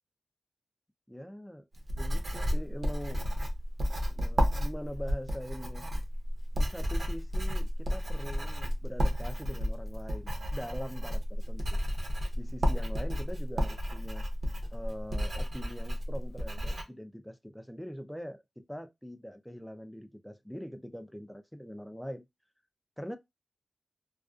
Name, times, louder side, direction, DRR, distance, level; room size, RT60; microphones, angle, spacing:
voice 1, 1.1-1.7 1.9-3.3 4.1-5.9 6.5-11.8 12.3-14.2 14.7-22.2 23.0-23.2, equal, ahead, 0.3 m, -43 dB
Writing, 1.7-16.8, equal, 55° right, 0.7 m, -32 dB
2.4 x 2.2 x 2.4 m
wide cardioid pair, 85°, 0 cm